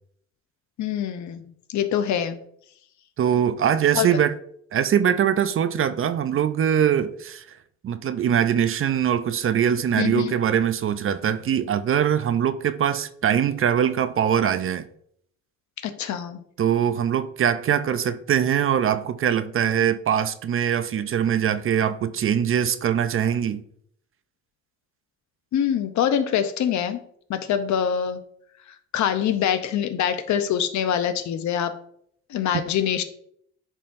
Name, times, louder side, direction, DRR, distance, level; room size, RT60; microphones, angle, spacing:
voice 1, 0.8-1.4 1.7-2.4 4.0-4.1 10.0-10.3 15.8-16.4 25.5-27.0 27.3-28.2 28.9-31.8 32.3-33.0, left 9 dB, 70° left, 0.7 m, -24 dB
voice 2, 3.2-4.3 4.7-7.4 7.8-14.8 16.6-23.6 32.5-32.6, right 9 dB, 45° right, 0.5 m, -22 dB
11.0 x 3.8 x 2.6 m
cardioid pair, 90°, 30 cm